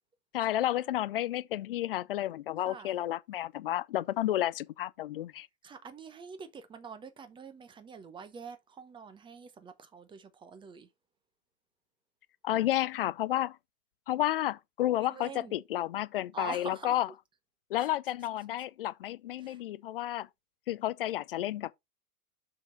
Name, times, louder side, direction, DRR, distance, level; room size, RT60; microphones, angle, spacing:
voice 1, 0.3-5.5 12.4-13.6 14.1-17.1 17.7-20.3 20.7-21.7, left 13 dB, 40° left, 0.4 m, -31 dB
voice 2, 2.7-3.0 5.6-10.9 15.0-15.6 16.3-17.0 17.8-17.9 19.4-19.6, right 5 dB, 10° right, 0.7 m, -45 dB
6.8 x 5.6 x 3.9 m
figure-of-eight pair, 100°, 47 cm